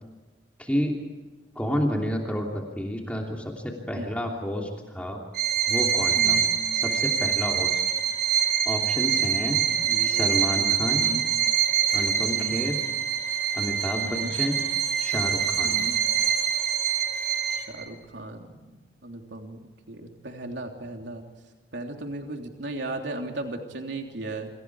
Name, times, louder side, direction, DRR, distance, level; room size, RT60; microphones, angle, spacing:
voice 1, 0.6-1.0 1.5-5.2 5.7-6.4 6.8-7.8 8.6-9.6 10.0-11.2 11.9-12.8 13.5-14.6 15.0-15.7, equal, 5° left, 0 dB, 3.1 m, -30 dB
Bowed string instrument, 5.3-17.8, right 8 dB, 55° right, 5.3 m, -25 dB
voice 2, 6.1-6.5 9.9-10.3 10.6-11.2 12.3-12.7 14.0-14.3 15.6-16.0 17.5-19.6 19.9-21.3 21.7-24.5, right 2 dB, 75° right, 3 dB, 3.2 m, -36 dB
29.0 x 26.0 x 4.9 m, 1.2 s
head